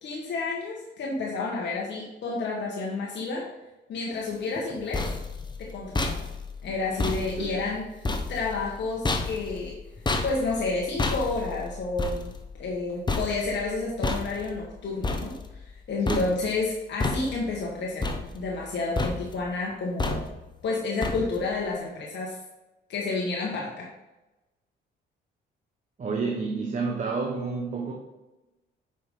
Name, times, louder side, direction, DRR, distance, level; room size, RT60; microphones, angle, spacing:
voice 1, 0.0-3.5 3.9-5.1 5.6-6.2 6.6-7.8 8.3-9.8 10.2-12.3 12.6-18.1 18.3-20.3 20.6-22.4 22.9-23.9, left 3 dB, 65° left, -3 dB, 1.5 m, -30 dB
sound 1, 4.6-15.8 16.1-16.7 17.0-17.7 18.0-18.7 19.0-19.5 20.0-20.5 21.0-21.6, left 3 dB, 20° left, 0.9 m, -31 dB
voice 2, 26.0-27.9, right 4 dB, 40° right, 0 dB, 1.1 m, -29 dB
8.5 x 5.4 x 3.8 m, 1.0 s
cardioid pair, 90°, 20 cm